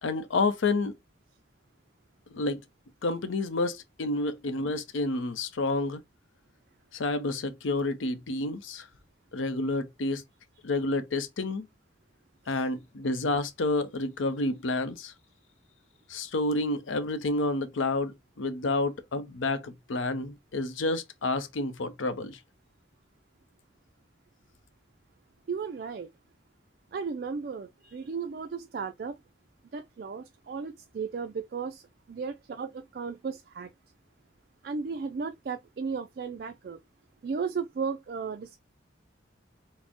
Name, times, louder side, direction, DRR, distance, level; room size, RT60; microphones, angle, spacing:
voice 1, 0.0-0.9 2.3-2.6 3.0-6.0 6.9-8.9 9.3-10.2 10.6-11.7 12.5-15.1 16.1-22.4, left 2 dB, 90° left, 0.6 m, -29 dB
voice 2, 25.5-26.1 26.9-29.2 29.7-31.8 32.1-33.7 34.6-36.8 37.2-38.6, right 5 dB, 50° right, 0.3 m, -35 dB
4.2 x 2.1 x 2.9 m
head